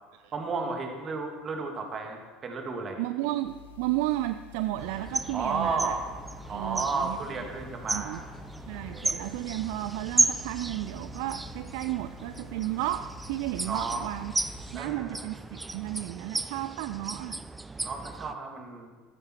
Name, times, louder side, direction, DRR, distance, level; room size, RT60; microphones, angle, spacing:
voice 1, 0.3-3.0 5.3-6.0 6.5-8.2 8.9-9.3 13.6-14.1 14.7-15.3 17.8-18.9, right 4 dB, 35° right, 3 dB, 2.6 m, -33 dB
voice 2, 3.0-5.9 6.5-7.2 7.9-8.2 8.7-14.3 14.7-17.4, right 16 dB, 60° right, 11 dB, 0.4 m, -33 dB
sound 1, 3.4-14.8, left 11 dB, 70° left, 0.9 m, -50 dB
sound 2, 4.8-18.3, right 2 dB, 10° right, 0.6 m, -34 dB
15.0 x 14.0 x 4.7 m, 1.3 s
figure-of-eight pair, 65°, 0 cm